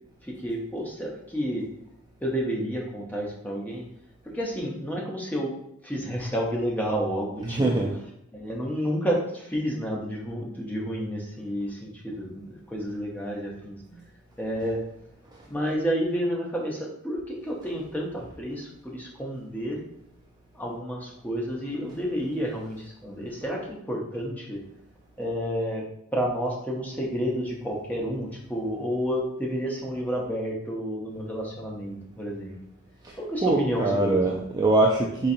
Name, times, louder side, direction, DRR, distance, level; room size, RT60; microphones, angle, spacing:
voice 1, 0.2-1.6 2.2-3.8 4.2-5.5 5.8-7.7 8.3-13.8 14.4-14.8 15.5-19.8 20.5-24.6 25.2-25.8 26.1-32.5 33.2-34.2, equal, 5° left, -2 dB, 0.7 m, -30 dB
voice 2, 7.5-7.9 13.9-14.0 33.0-33.2 33.4-35.3, right 2 dB, 20° right, -2 dB, 0.3 m, -23 dB
4.1 x 3.7 x 2.6 m, 0.77 s
head